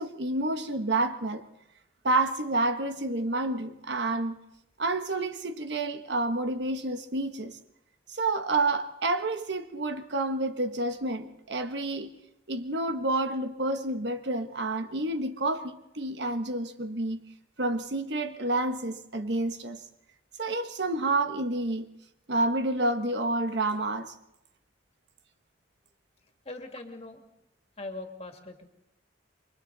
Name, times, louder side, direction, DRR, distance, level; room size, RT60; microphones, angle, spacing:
voice 1, 0.0-1.4 2.0-4.4 4.8-7.6 8.1-12.1 12.5-17.2 17.6-19.8 20.4-21.9 22.3-24.1, right 2 dB, 65° right, 1.3 m, -29 dB
voice 2, 26.4-27.2 27.8-28.6, left 2 dB, 35° left, 2.4 m, -41 dB
28.5 x 24.0 x 4.1 m
head